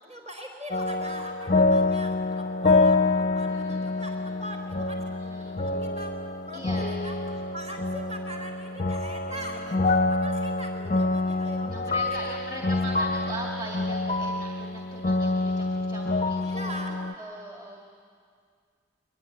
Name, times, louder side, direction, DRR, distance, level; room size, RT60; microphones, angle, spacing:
voice 1, 0.0-5.0 5.4-6.2 6.4-12.4 12.7-13.2 16.4-17.0, equal, 35° right, 3 dB, 4.2 m, -41 dB
sound 1, 0.7-17.1, left 2 dB, 35° left, 0.6 m, -26 dB
voice 2, 3.5-4.6 5.0-5.7 6.5-6.9 9.3-9.8 11.7-17.8, right 1 dB, 20° right, -1 dB, 2.0 m, -41 dB
23.0 x 20.5 x 10.0 m, 2.2 s
head